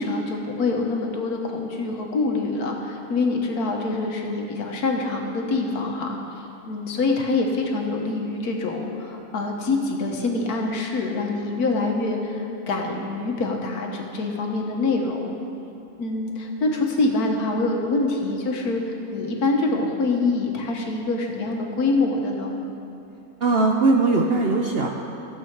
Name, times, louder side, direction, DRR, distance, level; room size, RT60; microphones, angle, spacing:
voice 1, 0.0-6.2 6.7-15.3 16.0-22.5, left 3 dB, 75° left, 1 dB, 1.7 m, -25 dB
voice 2, 23.4-24.9, right 3 dB, 55° right, 0 dB, 0.7 m, -20 dB
15.0 x 7.8 x 4.6 m, 2.9 s
omnidirectional pair, 1.6 m